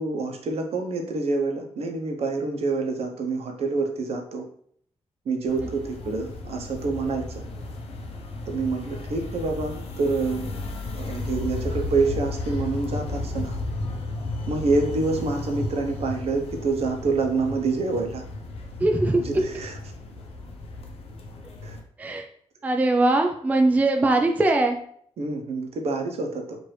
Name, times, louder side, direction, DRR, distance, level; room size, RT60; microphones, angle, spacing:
voice 1, 0.0-4.4 5.3-7.2 8.5-10.5 10.9-13.6 14.5-18.2 19.1-19.7 21.6-21.8 25.2-26.6, right 3 dB, 60° right, 3 dB, 0.7 m, -27 dB
sound 1, 5.5-21.8, left 2 dB, 60° left, 0.6 m, -34 dB
voice 2, 18.8-19.2 22.0-22.2 22.6-24.8, right 2 dB, 15° right, 3 dB, 0.3 m, -21 dB
4.5 x 2.5 x 3.2 m, 0.62 s
wide cardioid pair, 145°, 11 cm